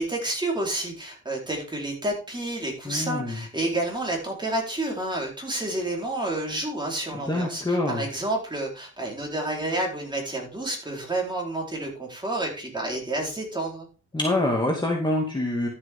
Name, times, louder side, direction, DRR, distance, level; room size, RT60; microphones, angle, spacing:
voice 1, 0.0-13.9, right 1 dB, 15° right, -1 dB, 4.3 m, -29 dB
voice 2, 2.9-3.4 7.3-8.0 14.1-15.7, left 1 dB, 15° left, -1 dB, 2.4 m, -25 dB
12.5 x 7.6 x 3.7 m, 0.35 s
cardioid pair, 110°, 32 cm